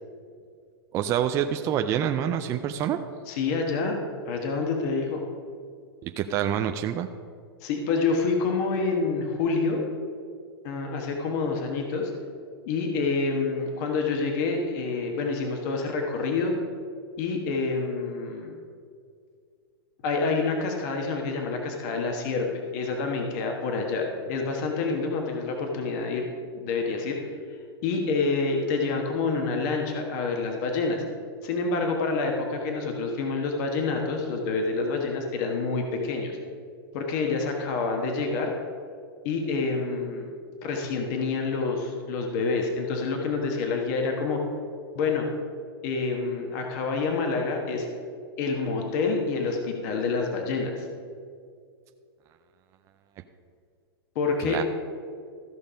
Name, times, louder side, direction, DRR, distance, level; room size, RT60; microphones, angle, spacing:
voice 1, 0.9-3.0 6.0-7.1 54.4-54.6, right 9 dB, 20° right, 7 dB, 0.4 m, -26 dB
voice 2, 3.3-5.2 7.6-9.8 10.6-12.1 12.7-16.5 17.2-18.6 20.0-22.5 22.7-26.3 26.5-27.2 27.8-31.0 31.4-36.3 36.9-38.5 39.2-40.3 40.6-44.4 44.9-45.3 45.8-47.9 48.4-50.9 54.1-54.6, left 4 dB, 45° left, 2 dB, 1.4 m, -27 dB
14.0 x 5.3 x 5.1 m, 2.2 s
hypercardioid pair, 140°, 13 cm